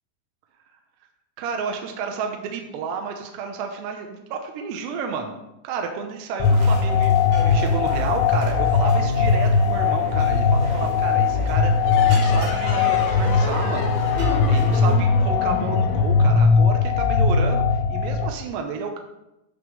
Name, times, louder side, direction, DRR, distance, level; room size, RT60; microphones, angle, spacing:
voice 1, 1.4-5.3 5.6-7.1 7.4-13.9 14.5-17.6 17.9-19.0, right 5 dB, 80° right, 4 dB, 2.9 m, -31 dB
sound 1, 6.4-18.3, left 5 dB, 90° left, 2.9 m, -19 dB
sound 2, 6.4-15.0, right 3 dB, 65° right, 3.5 m, -36 dB
sound 3, 11.8-17.1, left 5 dB, 70° left, 3.0 m, -31 dB
9.1 x 3.7 x 6.5 m, 0.89 s
omnidirectional pair, 5.1 m